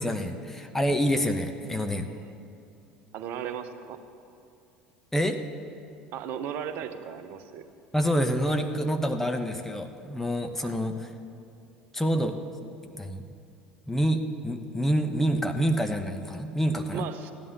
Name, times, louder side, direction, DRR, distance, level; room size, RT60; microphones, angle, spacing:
voice 1, 0.0-2.1 5.1-5.4 7.9-11.1 11.9-12.3 12.8-13.2 13.9-17.0, equal, 5° left, 5 dB, 1.0 m, -27 dB
voice 2, 3.1-4.0 6.1-7.6 10.6-10.8 16.9-17.3, right 8 dB, 50° right, 10 dB, 0.9 m, -36 dB
15.5 x 11.0 x 6.8 m, 2.6 s
figure-of-eight pair, 65°, 4 cm